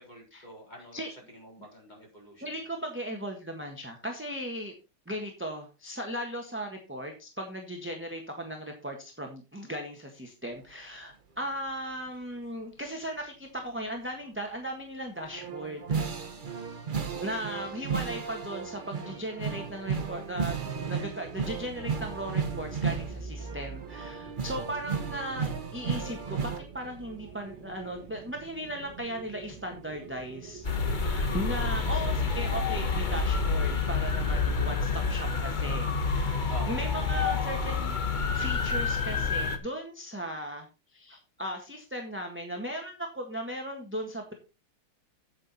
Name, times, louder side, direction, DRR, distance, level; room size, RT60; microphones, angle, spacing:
voice 1, 0.0-2.4 17.0-17.6 31.9-32.1 36.4-36.8, equal, 20° left, -1 dB, 4.1 m, -47 dB
voice 2, 2.4-4.7 5.1-16.0 17.2-38.0 38.3-44.3, equal, 5° right, 2 dB, 1.1 m, -37 dB
sound 1, 15.2-26.6, right 6 dB, 50° right, 0.5 m, -34 dB
sound 2, 20.6-32.3, right 4 dB, 30° right, 1.9 m, -46 dB
sound 3, 30.6-39.6, left 4 dB, 35° left, 0.7 m, -28 dB
8.8 x 8.5 x 4.2 m, 0.30 s
omnidirectional pair, 2.4 m